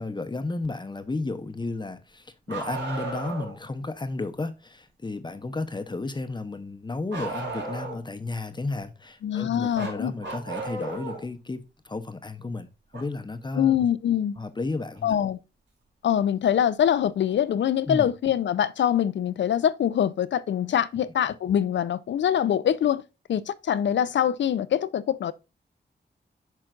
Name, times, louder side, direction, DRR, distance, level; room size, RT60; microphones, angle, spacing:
voice 1, 0.0-12.7 12.9-13.8 14.4-15.2 17.9-18.1, left 3 dB, 25° left, 0.7 m, -33 dB
Bark, 2.5-3.6 7.1-8.1 9.7-11.3 12.9-13.0 14.9-15.0 16.1-16.2, right 3 dB, 80° right, 3.3 m, -34 dB
voice 2, 9.2-10.1 13.6-14.3 15.0-15.4 16.0-23.0 23.3-25.3, left 9 dB, 80° left, 0.4 m, -24 dB
8.9 x 5.7 x 2.4 m
wide cardioid pair, 105°, 18 cm